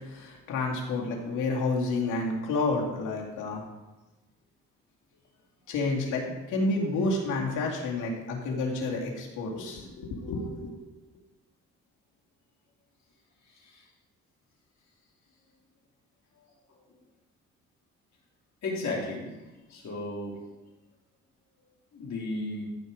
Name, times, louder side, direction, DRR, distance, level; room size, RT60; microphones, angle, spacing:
voice 1, 0.1-3.6 5.7-10.7, left 3 dB, 85° left, -1 dB, 2.4 m, -30 dB
voice 2, 18.6-19.3 19.7-20.4 21.9-22.6, left 2 dB, 65° left, -4 dB, 3.4 m, -33 dB
14.0 x 4.7 x 6.5 m, 1.1 s
cardioid pair, 90°, 30 cm